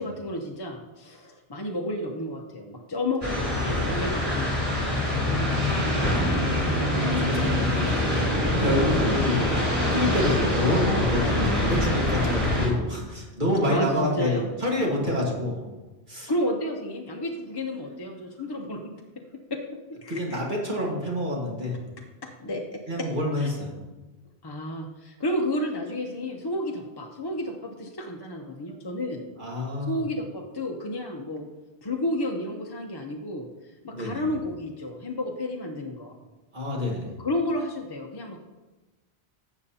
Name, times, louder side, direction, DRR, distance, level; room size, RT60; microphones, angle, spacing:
voice 1, 0.0-4.4 4.9-6.5 6.9-7.7 13.7-14.5 14.8-15.2 16.3-18.8 19.5-19.6 20.0-20.4 22.4-22.8 23.4-23.5 24.4-29.2 29.9-31.5 31.8-33.5 33.8-36.2 37.2-38.4, left 1 dB, 25° left, 1 dB, 0.6 m, -31 dB
sound 1, 3.2-12.7, left 1 dB, 15° right, 2.9 m, -24 dB
voice 2, 6.7-8.3 8.6-15.6 16.1-16.3 20.1-21.8 22.9-23.7 29.4-30.0 33.9-34.2 36.5-37.1, left 1 dB, 45° right, -3 dB, 1.8 m, -28 dB
12.0 x 7.2 x 2.8 m, 1.2 s
omnidirectional pair, 1.1 m